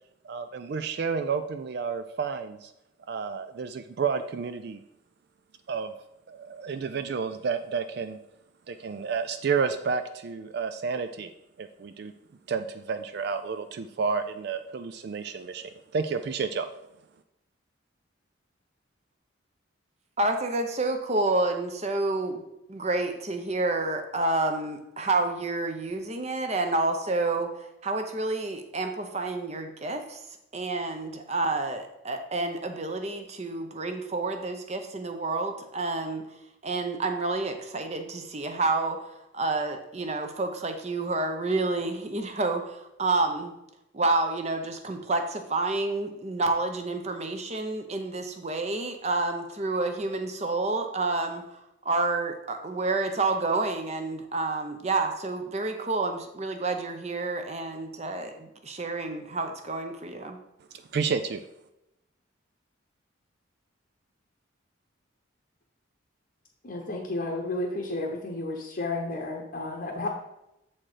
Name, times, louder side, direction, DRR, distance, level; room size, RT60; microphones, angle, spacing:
voice 1, 0.2-2.7 3.1-4.8 5.7-5.9 6.3-8.2 8.7-11.3 11.6-12.1 12.5-16.7 60.9-61.4, right 5 dB, 55° right, 9 dB, 0.3 m, -30 dB
voice 2, 20.2-22.4 22.7-30.2 30.5-36.2 36.6-39.1 39.3-43.5 43.9-51.6 51.8-60.4, right 2 dB, 35° right, 6 dB, 0.7 m, -29 dB
voice 3, 66.6-70.1, left 2 dB, 45° left, 0 dB, 0.9 m, -32 dB
7.4 x 4.3 x 4.9 m, 0.87 s
head